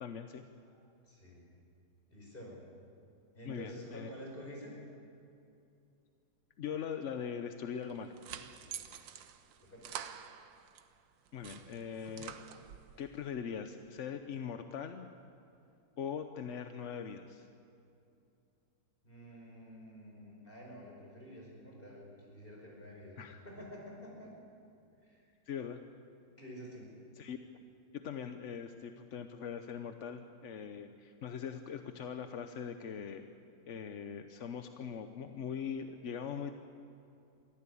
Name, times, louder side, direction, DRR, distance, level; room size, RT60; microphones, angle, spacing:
voice 1, 0.0-0.4 3.5-4.1 6.6-8.2 11.3-12.4 13.0-15.1 16.0-17.5 23.2-23.4 25.5-25.8 27.2-27.4 27.9-33.2 33.7-36.6, left 7 dB, 55° left, 8 dB, 0.9 m, -41 dB
voice 2, 1.0-1.4 2.1-2.6 3.3-4.7 8.6-8.8 9.6-9.9 19.0-24.3 25.0-25.2 26.4-27.0, equal, 25° left, -1 dB, 5.6 m, -49 dB
sound 1, 7.8-10.9 11.3-13.0, right 9 dB, 85° right, 1.6 m, -47 dB
22.5 x 15.0 x 8.5 m, 2.6 s
omnidirectional pair, 2.0 m